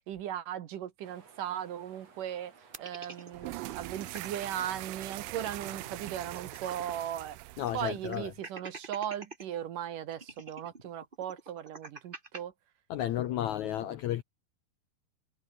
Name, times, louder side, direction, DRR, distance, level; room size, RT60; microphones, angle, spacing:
voice 1, 0.0-12.5 13.0-14.0, right 10 dB, 65° right, 2.8 m, -38 dB
sound 1, 1.0-6.2, right 5 dB, 45° right, 4.7 m, -58 dB
sound 2, 2.7-4.5 4.8-4.9 5.2-7.0 7.3-7.4 7.9-9.4 10.1-12.4, right 3 dB, 15° right, 2.0 m, -47 dB
sound 3, 3.3-8.4, right 21 dB, 80° right, 2.1 m, -42 dB
voice 2, 7.6-8.3 12.9-14.2, left 12 dB, 75° left, 1.7 m, -32 dB
omnidirectional pair, 4.4 m